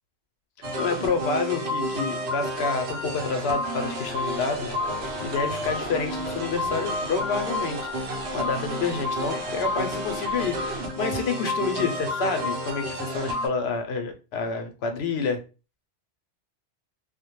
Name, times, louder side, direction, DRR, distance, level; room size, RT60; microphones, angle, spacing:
voice 1, 0.6-4.8 5.2-7.9 8.3-15.4, left 4 dB, 70° left, 0.8 m, -29 dB
sound 1, 0.6-13.5, left 1 dB, 70° right, 1.0 m, -30 dB
sound 2, 4.0-10.8, equal, 15° right, 0.6 m, -40 dB
2.3 x 2.1 x 2.9 m
omnidirectional pair, 1.1 m